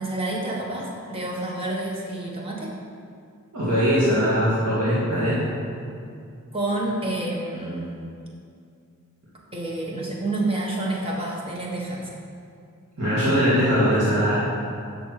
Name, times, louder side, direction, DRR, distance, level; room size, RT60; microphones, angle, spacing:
voice 1, 0.0-2.7 6.5-8.1 9.5-12.1, right 2 dB, 25° right, -3 dB, 1.4 m, -29 dB
voice 2, 3.5-5.4 13.0-14.4, equal, 85° right, -10 dB, 2.4 m, -21 dB
10.0 x 6.4 x 4.9 m, 2.4 s
head